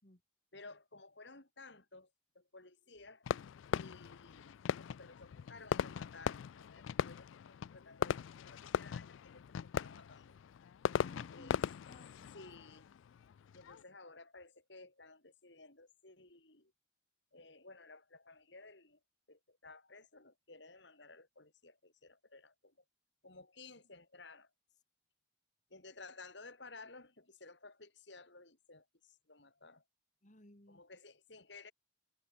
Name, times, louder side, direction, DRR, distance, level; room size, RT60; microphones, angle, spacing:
voice 1, 0.5-3.3 3.7-10.4 11.3-11.6 12.3-12.9 13.5-16.7 17.3-19.0 19.3-22.8 23.2-24.5 25.7-29.8 30.7-31.7, left 3 dB, 65° left, 4.3 m, -56 dB
Fireworks, 3.3-13.8, left 8 dB, 85° left, 0.3 m, -39 dB
voice 2, 11.0-12.3 30.2-30.8, left 1 dB, 40° left, 3.0 m, -59 dB
head